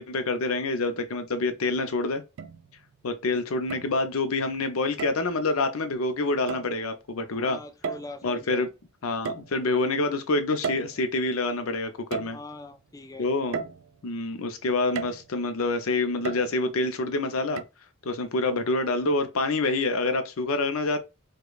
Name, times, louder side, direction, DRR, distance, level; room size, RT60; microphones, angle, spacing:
voice 1, 0.0-2.2 3.0-7.6 8.2-8.7 9.0-12.4 13.2-13.6 14.0-17.6 18.0-21.0, left 2 dB, 85° left, 0.6 m, -27 dB
sound 1, 1.3-1.4 2.4-3.0 3.7-4.3 5.0-5.3 6.5-6.8 7.8-8.4 9.2-9.9 10.6-11.5 12.1-12.8 13.5-14.3 14.9-15.5 16.2-16.8 17.6-17.7, right 5 dB, 70° right, 0.3 m, -35 dB
voice 2, 7.3-8.6 12.3-13.3, left 2 dB, 15° left, 0.4 m, -42 dB
4.8 x 2.2 x 2.3 m
head